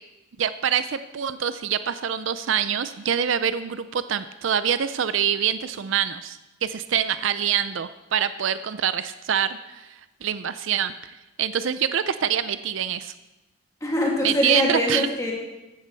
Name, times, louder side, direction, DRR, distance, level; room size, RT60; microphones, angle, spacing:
voice 1, 0.4-10.9 11.4-13.1 14.2-15.1, right 8 dB, 70° right, 13 dB, 0.5 m, -25 dB
voice 2, 13.8-15.3, left 1 dB, 15° left, -3 dB, 2.5 m, -23 dB
14.5 x 11.5 x 4.1 m, 1.0 s
head